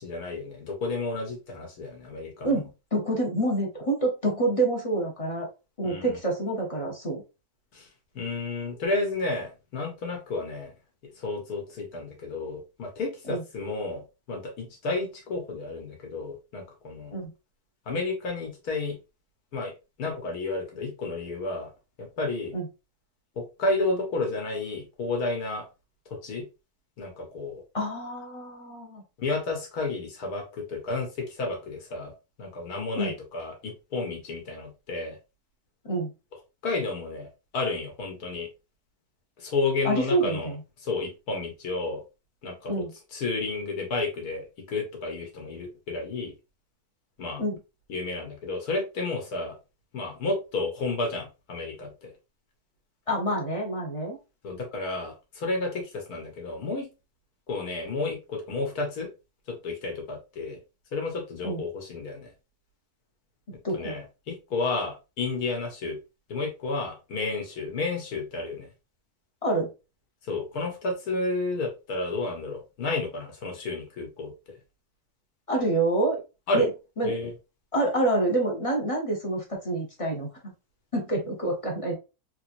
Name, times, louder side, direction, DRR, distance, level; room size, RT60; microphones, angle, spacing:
voice 1, 0.0-2.6 5.8-6.2 7.7-7.9 8.1-10.7 11.2-14.0 14.3-17.1 17.9-19.0 19.5-19.7 20.0-21.7 22.0-22.5 23.4-25.7 26.2-26.4 27.0-27.6 29.2-32.1 32.4-35.2 36.6-37.3 37.5-38.5 39.4-40.5 40.8-42.0 42.4-42.8 43.1-46.3 47.2-47.4 47.9-49.5 49.9-52.1 54.4-56.9 57.5-59.1 59.5-60.6 60.9-62.3 63.7-66.0 66.3-68.7 70.2-74.3 76.5-76.7 77.0-77.3, left 3 dB, 65° left, 2 dB, 1.6 m, -31 dB
voice 2, 2.4-5.5 5.8-7.2 13.3-13.4 17.1-17.3 22.5-22.7 27.7-29.0 33.0-33.1 35.8-36.1 39.8-40.6 42.7-42.9 47.4-47.6 53.1-54.2 61.4-61.6 63.6-63.9 69.4-69.7 75.5-76.2 76.5-76.7 77.0-77.1 77.7-80.5 80.9-81.9, right 2 dB, 25° left, 0 dB, 0.8 m, -27 dB
3.5 x 3.2 x 2.5 m, 0.28 s
omnidirectional pair, 1.8 m